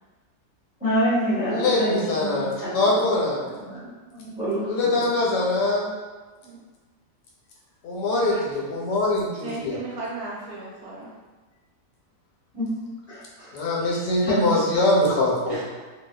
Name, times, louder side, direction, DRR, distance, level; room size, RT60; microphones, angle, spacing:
voice 1, 0.8-3.0 3.5-5.1 12.5-12.7 13.1-13.5 13.8-14.5, equal, 5° right, -13 dB, 0.7 m, -28 dB
voice 2, 1.5-3.4 4.7-5.9 7.8-9.8 13.5-15.6, left 2 dB, 85° left, -4 dB, 1.3 m, -23 dB
voice 3, 8.1-8.4 9.4-11.1 15.5-15.6, right 3 dB, 70° right, -5 dB, 1.0 m, -35 dB
2.7 x 2.2 x 2.2 m, 1.4 s
omnidirectional pair, 1.8 m